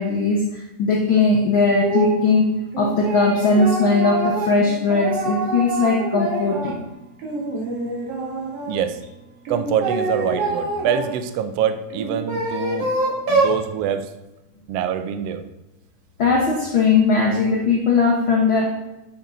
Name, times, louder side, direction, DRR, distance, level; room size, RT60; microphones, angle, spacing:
voice 1, 0.0-6.8 16.2-18.7, left 3 dB, 70° left, 0 dB, 1.2 m, -19 dB
sound 1, 1.8-2.3 2.7-6.8 7.2-8.8 9.5-11.1 11.9-13.6, right 2 dB, 50° right, 2.5 m, -25 dB
voice 2, 8.7-9.0 9.5-12.9 13.3-14.1 14.7-15.4, right 9 dB, 85° right, 9 dB, 1.4 m, -25 dB
11.5 x 6.0 x 3.9 m, 0.98 s
omnidirectional pair, 3.6 m